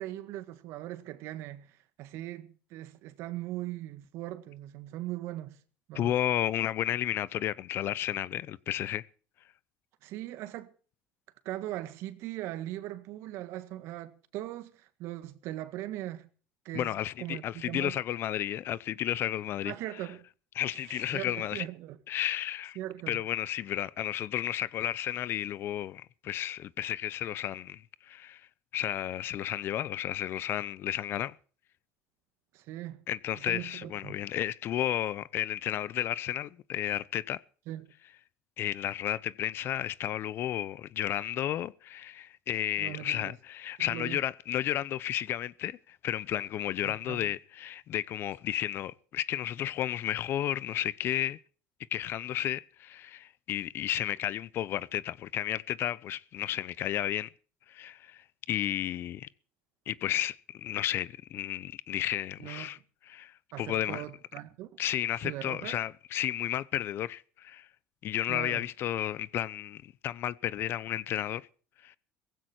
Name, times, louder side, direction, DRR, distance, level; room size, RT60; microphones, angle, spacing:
voice 1, 0.0-5.6 5.9-6.1 10.0-10.7 11.5-16.3 16.7-18.0 19.7-20.2 20.7-22.0 22.8-23.2 32.5-33.0 33.4-34.2 37.7-37.9 42.8-43.3 43.8-44.2 46.8-47.3 62.4-62.7 63.5-64.7 65.2-65.8 68.3-68.7, right 14 dB, 65° right, 1.7 m, -40 dB
voice 2, 5.9-9.0 16.7-19.7 20.6-21.7 22.1-22.8 23.1-28.4 28.7-31.4 33.1-37.4 38.6-51.4 51.9-57.3 57.7-59.3 59.9-62.8 63.1-64.1 64.8-67.7 68.0-71.5 71.8-72.0, left 12 dB, 55° left, 0.7 m, -32 dB
17.5 x 15.5 x 4.4 m
supercardioid pair, 95°, 5 cm